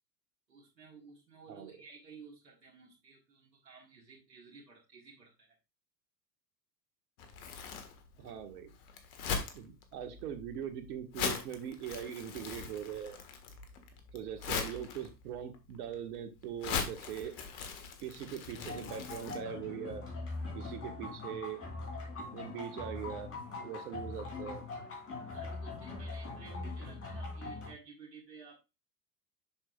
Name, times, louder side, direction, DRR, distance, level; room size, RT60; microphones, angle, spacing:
voice 1, 0.5-5.6 13.6-13.7 25.3-28.6, right 4 dB, 90° right, -5 dB, 1.7 m, -54 dB
Crumpling crinkling, 7.2-19.4, left 6 dB, 60° left, 1.6 m, -41 dB
voice 2, 8.2-8.7 9.5-13.2 14.1-17.4 18.0-20.0 20.5-21.6 22.3-23.3 23.6-24.6, right 9 dB, 65° right, 7 dB, 1.5 m, -41 dB
sound 1, 18.5-27.7, left 3 dB, 25° left, 3.1 m, -42 dB
7.3 x 6.4 x 2.3 m, 0.26 s
hypercardioid pair, 90°, 49 cm